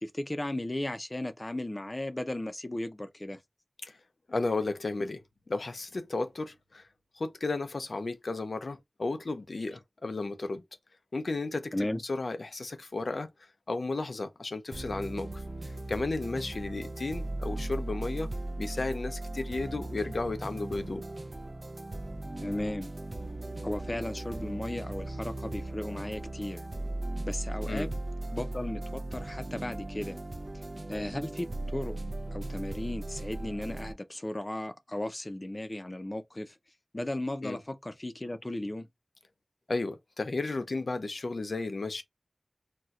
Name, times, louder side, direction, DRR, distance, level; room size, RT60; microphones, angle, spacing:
voice 1, 0.0-3.4 11.7-12.0 22.4-22.9 23.6-26.6 27.2-28.0 28.3-30.2 30.9-32.0 32.3-36.6 36.9-38.9, left 1 dB, 30° left, 0.5 m, -35 dB
voice 2, 4.3-6.8 7.1-10.6 11.1-11.7 12.0-13.3 13.7-15.4 15.9-18.3 18.6-21.1 27.7-27.9 37.4-37.6 39.7-42.0, left 3 dB, 85° left, 0.5 m, -33 dB
sound 1, 14.7-33.9, right 2 dB, 55° right, 0.5 m, -38 dB
4.1 x 2.2 x 2.4 m
wide cardioid pair, 60°, 0 cm